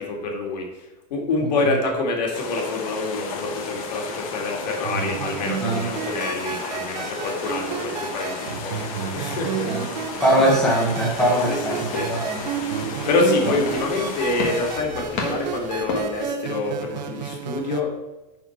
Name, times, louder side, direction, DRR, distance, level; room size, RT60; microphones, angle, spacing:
voice 1, 0.0-8.8 9.1-9.7 10.4-10.5 11.5-12.1 13.1-17.9, left 3 dB, 80° left, 1 dB, 2.4 m, -26 dB
sound 1, 2.3-14.8, left 5 dB, 55° left, 1.4 m, -34 dB
sound 2, 4.8-17.8, right 8 dB, 85° right, 1.0 m, -32 dB
sound 3, 10.0-16.2, left 3 dB, 35° left, 1.6 m, -35 dB
voice 2, 10.2-12.4, right 1 dB, 5° left, -5 dB, 1.4 m, -21 dB
11.5 x 4.4 x 4.5 m, 1.0 s
supercardioid pair, 175°, 21 cm